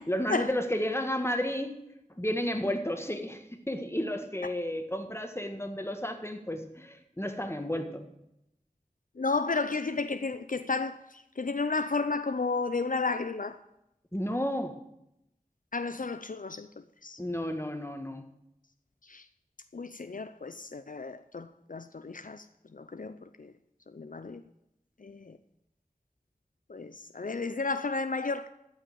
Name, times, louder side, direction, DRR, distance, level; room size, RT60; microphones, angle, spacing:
voice 1, 0.1-1.7 2.2-8.0 14.1-14.7 17.2-18.2, equal, 15° left, 1.6 m, -32 dB
voice 2, 9.2-13.6 15.7-16.7 17.0-17.2 19.1-19.2 19.7-22.4 22.7-23.5 23.9-24.4 25.0-25.4 26.7-28.5, left 4 dB, 65° left, 0.5 m, -32 dB
14.0 x 5.8 x 8.6 m
wide cardioid pair, 40°, 15 cm